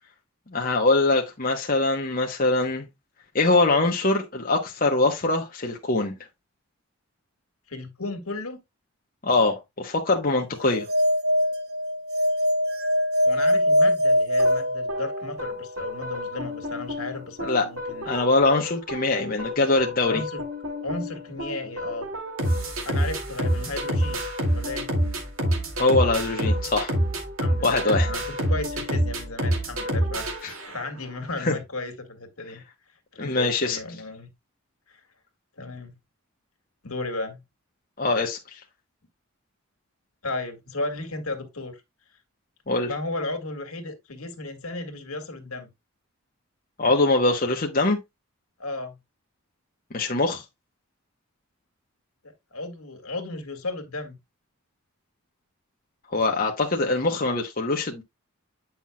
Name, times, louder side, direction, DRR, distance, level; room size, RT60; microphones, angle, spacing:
voice 1, 0.5-2.8 3.3-6.1 9.2-10.9 17.4-17.6 18.0-20.2 25.8-26.9 27.6-28.1 30.4-30.5 31.4-31.5 33.2-33.8 38.0-38.6 42.7-42.9 46.8-48.0 49.9-50.4 56.1-58.0, left 2 dB, 40° left, 1.0 m, -23 dB
voice 2, 7.7-8.6 13.3-18.2 20.0-20.5 20.8-22.1 22.8-24.2 24.5-24.9 27.4-32.6 33.1-34.3 34.9-35.0 35.6-35.9 36.8-37.4 40.2-41.8 42.8-45.7 48.6-49.0 52.5-54.2, left 2 dB, 75° left, 1.8 m, -34 dB
sound 1, 10.6-15.5, equal, 45° right, 1.0 m, -22 dB
sound 2, 14.4-31.0, equal, 65° right, 2.3 m, -28 dB
9.0 x 5.8 x 2.2 m
head